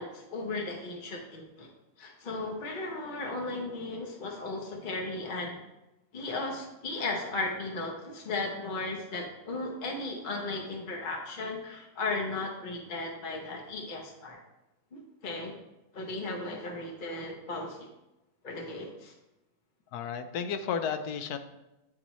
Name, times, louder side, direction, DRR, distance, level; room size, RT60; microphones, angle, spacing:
voice 1, 0.0-1.7 2.0-5.6 6.1-14.4 14.9-15.5 15.9-17.9 18.4-19.1, left 2 dB, 45° left, 0 dB, 0.7 m, -36 dB
voice 2, 19.9-21.4, left 7 dB, 90° left, 9 dB, 1.1 m, -33 dB
9.0 x 4.1 x 3.0 m, 0.96 s
omnidirectional pair, 1.6 m